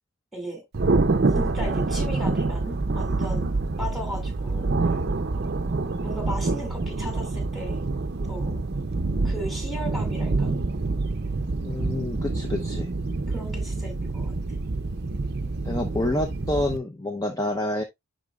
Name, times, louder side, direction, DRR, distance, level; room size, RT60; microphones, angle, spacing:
voice 1, 0.3-0.6 1.3-4.7 6.0-7.8 8.3-8.6 9.2-10.6 13.3-14.4, equal, ahead, 2.5 m, -36 dB
Thunder, 0.7-16.8, right 3 dB, 50° right, 0.6 m, -26 dB
voice 2, 11.6-12.9 15.6-17.8, left 1 dB, 15° left, 0.7 m, -28 dB
10.0 x 3.9 x 2.4 m
head